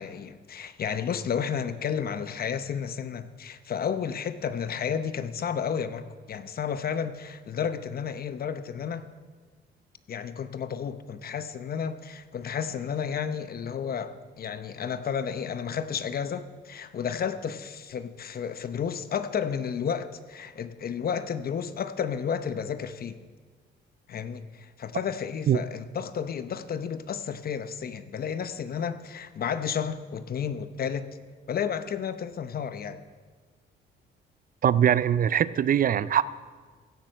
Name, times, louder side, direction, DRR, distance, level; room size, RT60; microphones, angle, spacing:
voice 1, 0.0-9.0 10.1-23.2 24.1-31.1 31.5-33.0, left 7 dB, 50° left, 12 dB, 0.8 m, -32 dB
voice 2, 34.6-36.2, right 9 dB, 45° right, 17 dB, 0.4 m, -22 dB
16.0 x 7.6 x 6.4 m, 1.5 s
cardioid pair, 90°, 20 cm